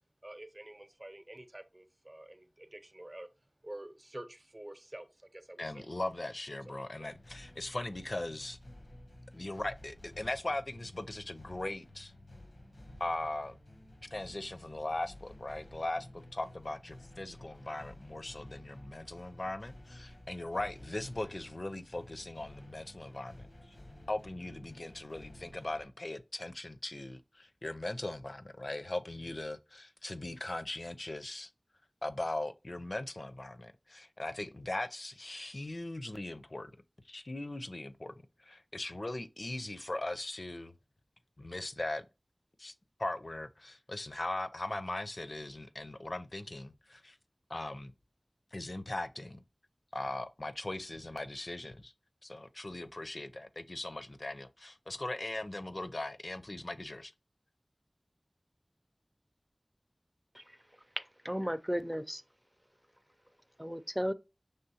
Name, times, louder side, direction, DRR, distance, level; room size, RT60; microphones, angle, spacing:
voice 1, 0.2-3.3 3.6-5.8 7.0-7.1, right 1 dB, 45° right, 0.7 m, -48 dB
voice 2, 5.6-8.6 9.3-12.1 13.0-13.6 14.0-23.8 24.1-31.5 32.0-36.7 37.0-38.1 38.4-40.7 41.4-42.0 42.6-42.7 43.0-47.2 47.5-47.9 48.5-49.4 49.9-51.9 52.2-57.1, left 2 dB, 65° left, 0.5 m, -39 dB
sound 1, 7.1-25.9, left 1 dB, 90° left, 0.8 m, -53 dB
voice 3, 61.2-62.2 63.6-64.1, equal, 10° right, 0.4 m, -34 dB
5.6 x 3.3 x 2.7 m
wide cardioid pair, 45°, 0 cm